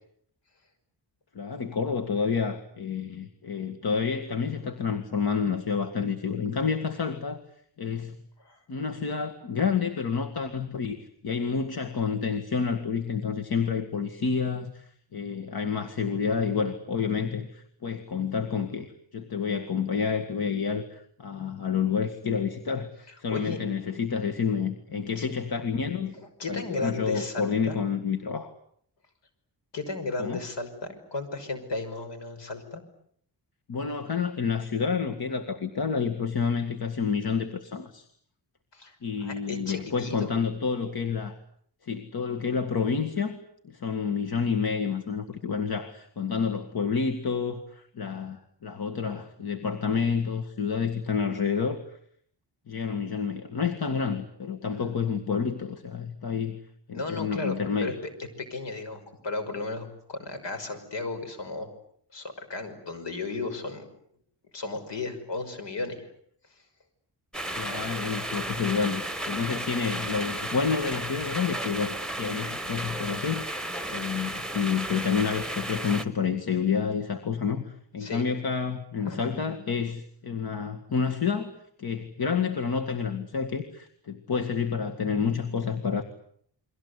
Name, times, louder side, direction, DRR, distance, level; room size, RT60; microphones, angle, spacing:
voice 1, 1.3-7.4 7.8-8.2 8.7-11.0 11.2-26.1 26.5-28.5 30.2-30.4 33.7-38.1 39.0-41.4 41.8-43.4 43.6-52.0 52.7-56.6 56.9-57.9 67.5-86.0, left 6 dB, 55° left, 5 dB, 2.0 m, -29 dB
voice 2, 23.1-23.6 25.2-25.3 26.4-27.8 29.7-32.8 38.7-39.0 39.2-40.3 56.9-58.1 58.4-61.7 62.1-63.9 64.5-66.1 78.0-78.3 79.0-79.3, left 3 dB, 75° left, 7 dB, 5.9 m, -34 dB
sound 1, 67.3-76.0, right 1 dB, ahead, 1.3 m, -34 dB
30.0 x 23.0 x 8.3 m, 0.64 s
wide cardioid pair, 175°, 43 cm